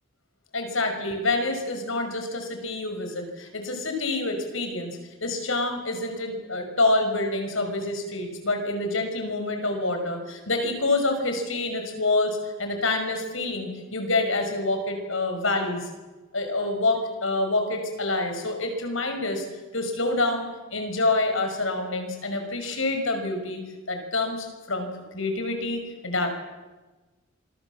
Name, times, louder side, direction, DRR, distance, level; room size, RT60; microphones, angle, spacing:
voice 1, 0.5-15.9 16.3-19.5 19.7-23.6 23.9-26.3, left 2 dB, 70° left, 5 dB, 5.9 m, -27 dB
27.0 x 23.0 x 7.3 m, 1.2 s
head